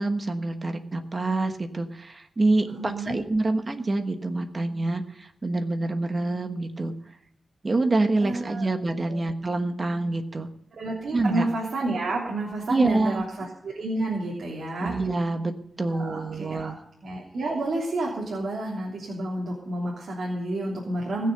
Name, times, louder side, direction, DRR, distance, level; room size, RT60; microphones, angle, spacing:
voice 1, 0.0-6.9 7.6-10.5 11.1-11.5 12.7-13.2 14.8-16.8, right 2 dB, 35° right, 7 dB, 1.2 m, -26 dB
voice 2, 2.7-3.2 8.2-8.7 9.1-9.2 10.8-14.9 15.9-16.7 17.0-21.3, right 2 dB, 70° right, -3 dB, 3.1 m, -30 dB
19.5 x 6.9 x 6.7 m, 0.73 s
wide cardioid pair, 95°, 0 cm